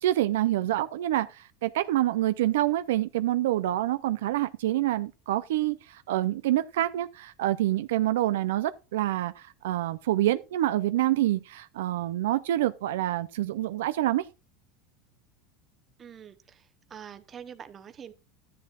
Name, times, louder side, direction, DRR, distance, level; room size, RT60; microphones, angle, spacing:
voice 1, 0.0-14.2, right 14 dB, 85° right, 0.5 m, -27 dB
voice 2, 16.0-16.6 16.9-18.1, right 8 dB, 30° right, 0.9 m, -45 dB
12.5 x 10.5 x 2.4 m
supercardioid pair, 120°, 0 cm